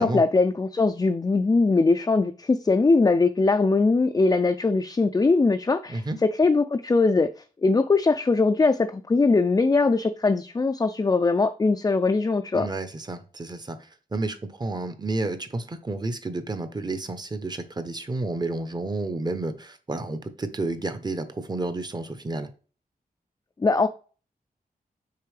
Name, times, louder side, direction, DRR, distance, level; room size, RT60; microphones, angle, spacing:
voice 1, 0.0-7.3 7.6-12.7 23.6-23.9, left 3 dB, 25° left, 0.3 m, -21 dB
voice 2, 12.5-13.8 14.1-22.5, right 2 dB, 25° right, 0.7 m, -31 dB
6.7 x 4.4 x 3.3 m
wide cardioid pair, 135°, 16 cm